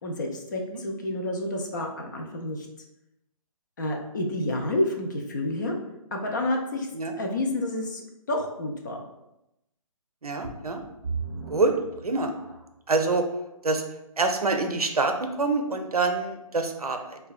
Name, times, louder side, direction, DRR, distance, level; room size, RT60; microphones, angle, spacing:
voice 1, 0.0-2.7 3.8-5.7 6.1-6.9 7.2-8.0 8.3-9.0, left 1 dB, 30° left, 1 dB, 0.4 m, -29 dB
voice 2, 10.2-10.8 11.5-11.7 12.0-12.3 12.9-13.3 13.6-13.8 14.2-17.2, right 3 dB, 85° right, 5 dB, 0.5 m, -26 dB
sound 1, 10.4-12.9 13.5-13.6 14.2-14.3, right 4 dB, 25° right, 0.5 m, -37 dB
4.4 x 2.2 x 2.3 m, 0.88 s
figure-of-eight pair, 140°, 19 cm